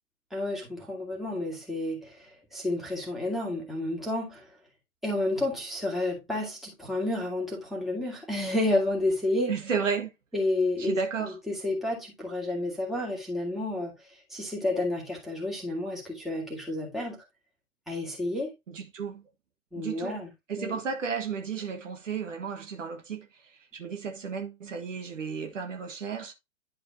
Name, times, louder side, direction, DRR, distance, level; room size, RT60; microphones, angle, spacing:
voice 1, 0.3-4.5 5.0-9.5 10.3-13.9 14.3-17.2 17.9-18.5 19.7-20.3 20.6-20.8, left 2 dB, ahead, 2.3 m, -30 dB
voice 2, 9.5-10.1 10.8-11.4 18.7-19.2 19.7-20.2 20.5-26.3, right 6 dB, 60° right, 1.6 m, -33 dB
10.5 x 4.9 x 2.7 m
figure-of-eight pair, 120°, 43 cm